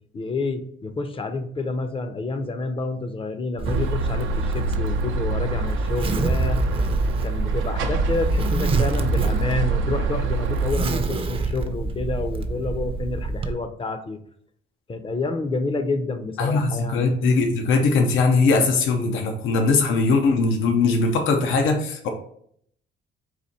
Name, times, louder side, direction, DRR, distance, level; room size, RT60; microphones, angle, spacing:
voice 1, 0.1-6.9 7.2-14.2 14.9-17.1, left 3 dB, 25° left, 9 dB, 0.5 m, -29 dB
Zipper (clothing), 3.6-13.5, right 3 dB, 25° right, 0.5 m, -27 dB
sound 1, 3.6-10.7, right 3 dB, 80° right, 0.5 m, -26 dB
voice 2, 16.4-22.1, left 3 dB, 85° left, 4 dB, 0.7 m, -20 dB
4.2 x 2.5 x 4.1 m, 0.66 s
cardioid pair, 90°, 20 cm